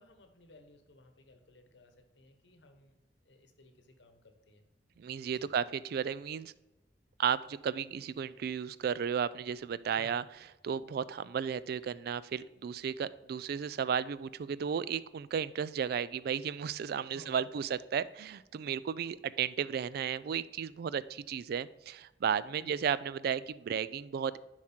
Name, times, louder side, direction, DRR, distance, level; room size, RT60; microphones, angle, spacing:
voice 1, 0.0-3.0 3.2-4.7 5.3-5.5 9.9-10.2 17.0-17.6 22.6-22.9, left 1 dB, 80° left, 6 dB, 1.0 m, -58 dB
voice 2, 5.0-6.5 7.2-10.2 10.6-24.4, right 7 dB, 60° right, 18 dB, 0.3 m, -34 dB
7.3 x 4.8 x 4.3 m, 1.0 s
head